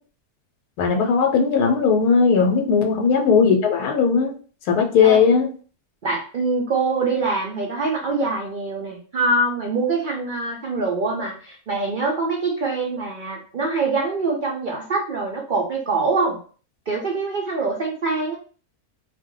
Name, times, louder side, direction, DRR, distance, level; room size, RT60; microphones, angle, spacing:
voice 1, 0.8-4.3 4.7-5.5, left 6 dB, 80° left, 3 dB, 1.1 m, -18 dB
voice 2, 6.0-16.4 16.9-18.4, right 3 dB, 85° right, -1 dB, 0.4 m, -24 dB
2.5 x 2.1 x 3.6 m, 0.40 s
omnidirectional pair, 1.6 m